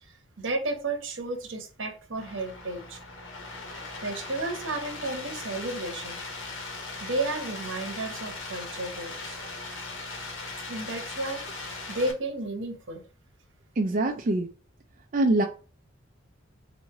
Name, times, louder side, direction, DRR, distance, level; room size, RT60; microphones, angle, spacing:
voice 1, 0.0-3.0 4.0-6.2 7.0-9.4 10.7-13.0, right 2 dB, 70° right, 1.0 m, -33 dB
sound 1, 2.1-12.1, left 3 dB, 70° left, 1.3 m, -39 dB
voice 2, 13.8-14.5 15.1-15.4, right 2 dB, 40° right, 0.4 m, -23 dB
4.0 x 3.1 x 3.5 m
head